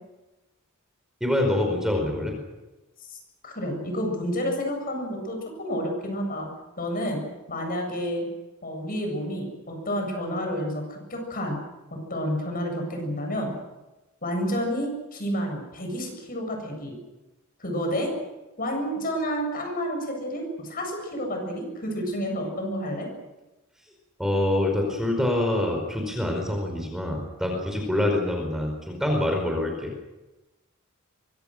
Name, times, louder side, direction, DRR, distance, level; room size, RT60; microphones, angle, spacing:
voice 1, 1.2-2.3 24.2-29.9, left 1 dB, ahead, 2 dB, 4.6 m, -25 dB
voice 2, 3.4-6.5 6.8-7.2 7.5-8.3 8.6-11.6 12.1-13.5 14.2-17.0 17.6-18.1 18.6-23.1, equal, 40° left, 3 dB, 7.8 m, -30 dB
25.0 x 24.5 x 6.5 m, 1.1 s
head